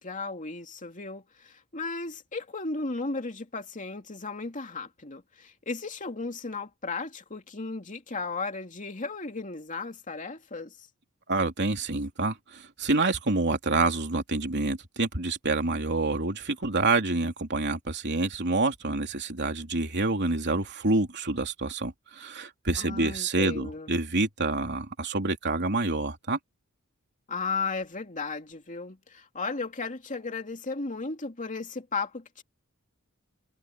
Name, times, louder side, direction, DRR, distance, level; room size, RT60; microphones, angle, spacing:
voice 1, 0.0-10.9 22.8-23.9 27.3-32.4, left 4 dB, 35° left, 2.7 m, -35 dB
voice 2, 11.3-26.4, right 3 dB, 55° right, 3.3 m, -27 dB
head